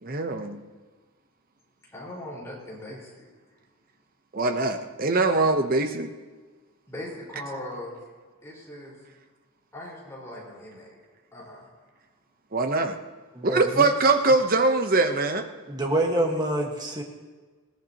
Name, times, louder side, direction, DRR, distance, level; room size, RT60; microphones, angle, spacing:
voice 1, 0.0-0.6 4.3-6.1 12.5-13.0 13.4-15.5, right 3 dB, 40° right, 6 dB, 0.9 m, -22 dB
voice 2, 1.9-3.3 6.9-8.0 8.4-9.0 9.7-10.9 11.3-11.7, left 1 dB, 15° left, -5 dB, 4.9 m, -39 dB
voice 3, 13.3-13.9 15.7-17.0, right 1 dB, 20° right, 1 dB, 1.6 m, -26 dB
21.0 x 17.0 x 3.0 m, 1.4 s
head